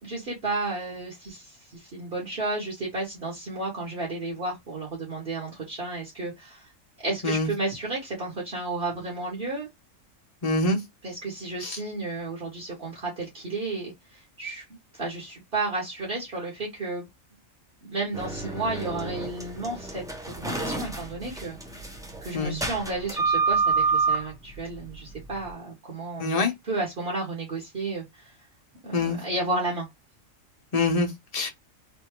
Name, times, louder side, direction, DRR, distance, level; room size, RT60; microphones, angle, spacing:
voice 1, 0.0-6.7 7.0-9.7 11.0-14.6 14.9-17.1 17.8-21.9 22.2-26.4 26.6-28.4 28.8-29.9, right 2 dB, 45° right, 1.5 m, -32 dB
voice 2, 10.4-10.8 11.6-11.8 22.3-22.6 26.2-26.5 28.9-29.2 30.7-31.5, left 3 dB, 35° left, 0.8 m, -25 dB
sound 1, 18.1-25.5, right 4 dB, 5° right, 0.3 m, -28 dB
3.4 x 2.7 x 2.9 m
omnidirectional pair, 1.4 m